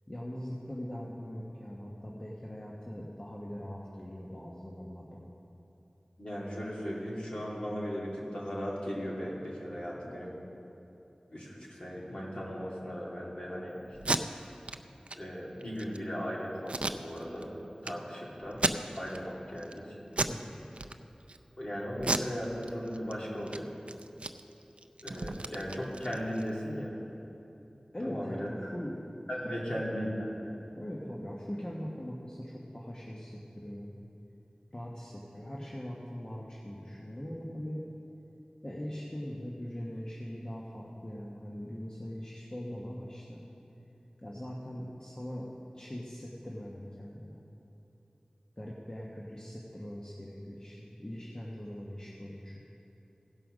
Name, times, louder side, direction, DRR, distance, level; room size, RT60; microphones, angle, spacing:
voice 1, 0.1-5.3 20.3-20.7 27.9-29.0 29.7-29.8 30.8-33.9 34.7-37.8 38.6-43.4 44.2-45.5 45.7-47.4 48.6-52.5, equal, 35° left, -4 dB, 1.2 m, -41 dB
voice 2, 6.2-10.4 11.3-14.2 15.2-17.5 17.8-18.6 18.9-20.0 21.6-23.7 25.0-27.0 28.0-28.5 29.3-30.3, equal, 50° left, -5 dB, 2.6 m, -37 dB
Packing tape duct tape, 13.9-14.2 14.6-14.8 15.1-15.2 15.6-16.0 16.7-17.5 17.8-17.9 18.5-19.2 19.6-19.8 20.1-20.4 20.7-21.4 22.0-23.1 23.4-23.6 23.9-26.5, right 2 dB, 60° right, 0.4 m, -33 dB
16.0 x 5.6 x 6.4 m, 3.0 s
wide cardioid pair, 50°, 2 cm